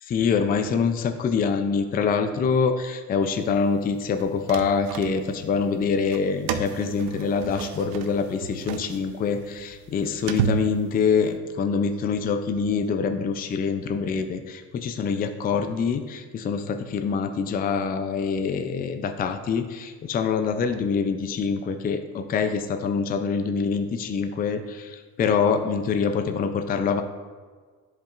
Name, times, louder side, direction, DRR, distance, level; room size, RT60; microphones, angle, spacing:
voice 1, 0.0-27.0, left 5 dB, 25° left, 7 dB, 0.4 m, -25 dB
sound 1, 4.1-5.5 6.0-11.4, right 8 dB, 75° right, 0.7 m, -32 dB
10.0 x 5.3 x 2.4 m, 1.5 s
cardioid pair, 115°, 36 cm